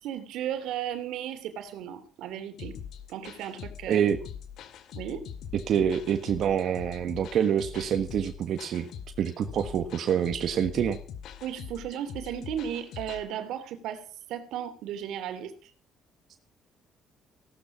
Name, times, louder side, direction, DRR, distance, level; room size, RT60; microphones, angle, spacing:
voice 1, 0.0-2.8 3.1-4.1 4.9-5.3 11.4-14.0 14.3-15.7, right 10 dB, 80° right, 10 dB, 2.9 m, -35 dB
sound 1, 2.6-13.2, left 8 dB, 70° left, 2.3 m, -43 dB
voice 2, 3.9-4.2 5.7-8.9 9.2-11.0, right 8 dB, 60° right, 8 dB, 1.4 m, -26 dB
17.0 x 12.5 x 6.1 m, 0.40 s
cardioid pair, 120°, 0 cm